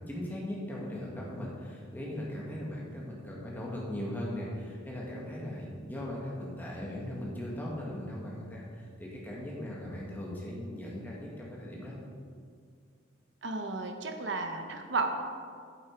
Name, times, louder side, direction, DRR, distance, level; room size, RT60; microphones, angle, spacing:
voice 1, 0.0-12.0, left 1 dB, 10° left, -4 dB, 1.7 m, -38 dB
voice 2, 13.4-15.1, right 3 dB, 65° right, 5 dB, 0.9 m, -33 dB
8.8 x 7.7 x 4.6 m, 2.2 s
head